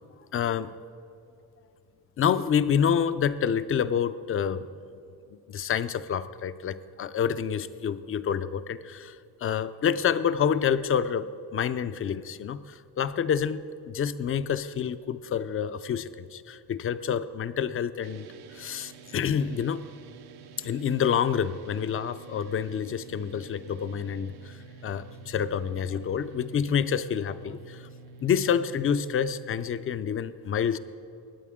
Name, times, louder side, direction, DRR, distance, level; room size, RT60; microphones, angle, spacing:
voice 1, 0.3-0.7 2.2-4.7 5.3-18.3 18.5-19.8 20.6-24.5 24.8-27.8 28.2-30.8, left 8 dB, 35° left, 13 dB, 0.4 m, -28 dB
sound 1, 18.0-30.0, right 5 dB, 80° right, 0.8 m, -48 dB
18.0 x 9.1 x 3.6 m, 2.5 s
cardioid pair, 125°, 38 cm